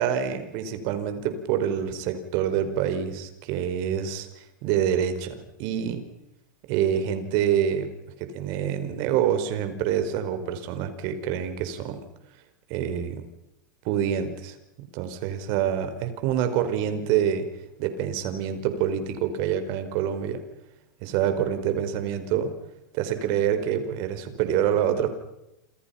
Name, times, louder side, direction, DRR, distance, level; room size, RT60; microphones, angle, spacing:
voice 1, 0.0-6.0 6.7-7.9 8.2-12.0 12.7-13.2 13.8-14.5 14.9-17.5 17.8-20.4 21.0-22.5 22.9-25.1, right 9 dB, 50° right, 9 dB, 4.9 m, -26 dB
29.0 x 27.0 x 5.9 m, 0.87 s
hypercardioid pair, 125°, 10 cm